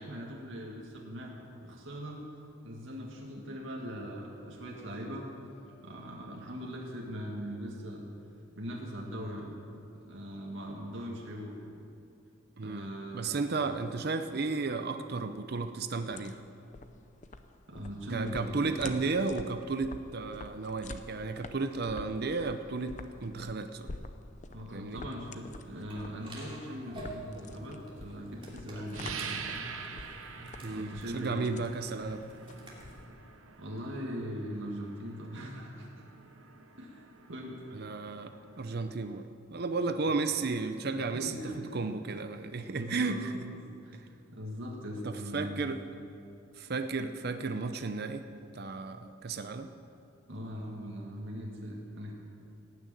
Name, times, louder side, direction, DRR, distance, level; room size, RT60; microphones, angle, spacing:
voice 1, 0.0-2.2 2.6-5.3 5.8-8.0 8.5-9.6 10.1-11.6 12.6-13.4 17.7-18.9 24.5-29.2 30.7-31.4 32.9-33.1 33.6-35.9 36.8-37.0 37.3-37.6 40.9-41.7 42.7-43.2 43.5-44.0 44.3-45.7 50.3-52.1, equal, 65° right, -2 dB, 2.0 m, -40 dB
voice 2, 12.6-16.4 18.1-23.9 24.7-25.0 30.6-32.2 37.7-43.3 45.0-45.8 46.6-48.2 48.5-49.7, right 4 dB, 50° right, 9 dB, 0.6 m, -33 dB
sound 1, 15.9-33.4, left 3 dB, 35° left, 0.6 m, -48 dB
sound 2, 25.9-33.0, right 1 dB, 25° right, 2.8 m, -48 dB
sound 3, 28.9-39.2, right 5 dB, 80° right, 1.0 m, -46 dB
18.0 x 6.5 x 9.0 m, 2.6 s
head